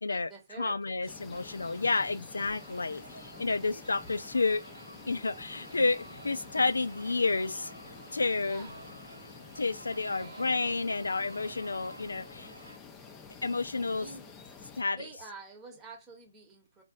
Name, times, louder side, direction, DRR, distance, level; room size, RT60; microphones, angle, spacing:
voice 1, 0.1-1.1 8.4-8.9 10.1-10.5 14.0-14.3 15.0-16.8, right 4 dB, 15° right, 1.0 m, -49 dB
voice 2, 0.6-4.6 5.1-7.7 8.1-8.7 9.6-12.5 13.4-14.1 14.8-15.1, left 3 dB, 75° left, 0.4 m, -30 dB
sound 1, 1.1-14.8, left 5 dB, 15° left, 0.5 m, -50 dB
sound 2, 1.3-12.8, right 1 dB, 90° right, 0.4 m, -50 dB
4.0 x 2.6 x 2.4 m
figure-of-eight pair, 135°, 0 cm